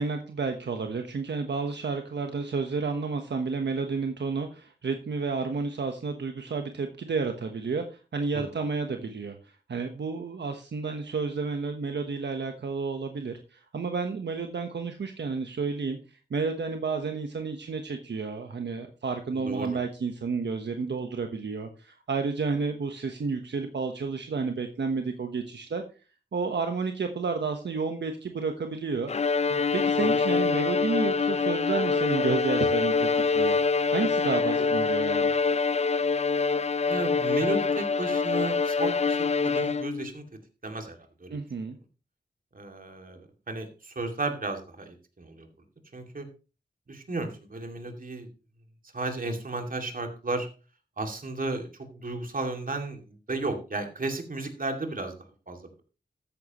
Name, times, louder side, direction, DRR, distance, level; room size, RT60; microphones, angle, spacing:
voice 1, 0.0-9.4 9.7-16.0 16.3-25.8 26.3-29.1 29.5-33.1 33.3-33.6 33.9-35.3 41.3-41.8, right 4 dB, 80° right, 5 dB, 1.2 m, -31 dB
voice 2, 19.3-19.8 30.0-30.2 36.9-40.2 40.6-41.4 42.5-43.2 43.5-45.5 45.9-46.3 46.9-48.3 48.9-50.5 51.0-55.1 55.5-55.8, right 2 dB, 50° right, 4 dB, 2.5 m, -34 dB
Bowed string instrument, 29.1-40.1, left 4 dB, 40° left, 0.4 m, -25 dB
13.0 x 9.1 x 3.0 m, 0.33 s
cardioid pair, 50°, 18 cm